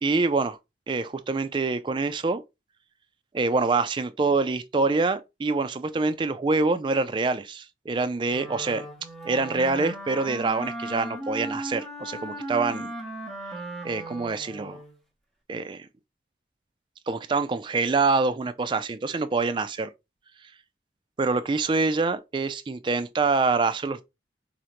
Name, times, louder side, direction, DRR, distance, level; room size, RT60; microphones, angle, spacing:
voice 1, 0.0-0.6 0.9-2.4 3.3-8.9 9.2-12.9 13.8-14.8 15.5-15.9 17.1-19.9 21.2-24.0, right 3 dB, 25° right, 0.3 m, -25 dB
Wind instrument woodwind instrument, 8.3-15.0, right 1 dB, ahead, 0.9 m, -37 dB
4.9 x 2.1 x 2.9 m
head